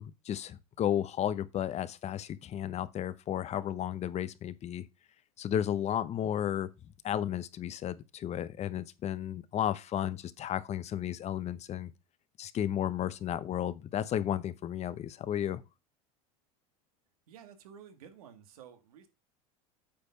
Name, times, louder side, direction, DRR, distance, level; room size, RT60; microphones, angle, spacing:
voice 1, 0.0-4.8 5.4-6.7 7.0-11.9 12.4-15.6, left 10 dB, 35° left, 0.9 m, -33 dB
voice 2, 17.3-19.1, right 8 dB, 85° right, 1.7 m, -52 dB
8.6 x 4.2 x 5.6 m
hypercardioid pair, 100°, 18 cm